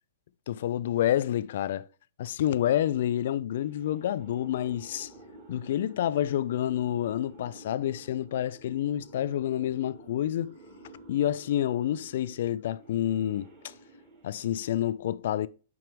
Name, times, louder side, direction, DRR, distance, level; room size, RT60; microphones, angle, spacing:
voice 1, 0.5-1.9 2.2-5.1 5.5-10.5 11.1-13.5 14.2-15.5, left 11 dB, 65° left, 0.4 m, -28 dB
sound 1, 3.7-14.8, right 1 dB, 35° right, 3.1 m, -51 dB
5.9 x 5.3 x 4.6 m
hypercardioid pair, 135°, 0 cm